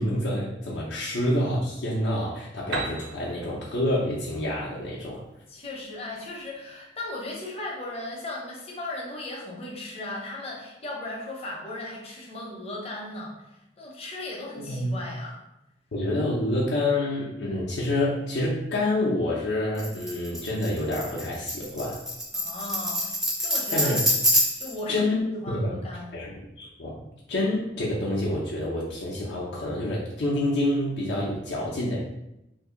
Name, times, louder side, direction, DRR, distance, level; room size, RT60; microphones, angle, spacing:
voice 1, 0.0-5.2 14.7-14.9 15.9-22.0 23.7-24.0 24.9-25.2 25.5-25.7 26.1-32.0, left 1 dB, 75° left, -6 dB, 0.6 m, -27 dB
Piano, 2.7-6.4, right 2 dB, 75° right, 0.6 m, -37 dB
voice 2, 5.5-15.4 22.3-23.1 23.4-23.9 24.6-25.1 25.3-26.1, left 2 dB, 35° left, -2 dB, 0.7 m, -37 dB
Tambourine, 19.8-24.8, equal, ahead, 0.4 m, -26 dB
2.7 x 2.6 x 3.7 m, 0.88 s
head